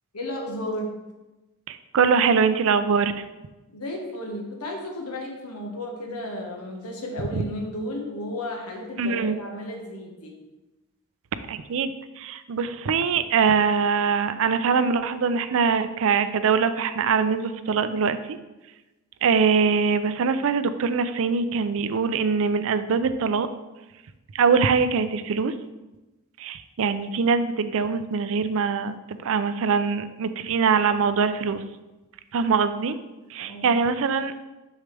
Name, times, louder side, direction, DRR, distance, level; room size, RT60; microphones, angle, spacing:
voice 1, 0.1-1.0 3.7-10.3 33.5-33.7, left 1 dB, 85° left, 1 dB, 1.4 m, -33 dB
voice 2, 1.7-3.1 7.3-7.4 9.0-9.4 11.5-18.4 19.2-23.5 24.3-25.5 26.4-31.6 32.3-33.0 33.3-34.3, right 5 dB, 65° right, 12 dB, 0.4 m, -23 dB
6.5 x 6.4 x 3.4 m, 1.1 s
head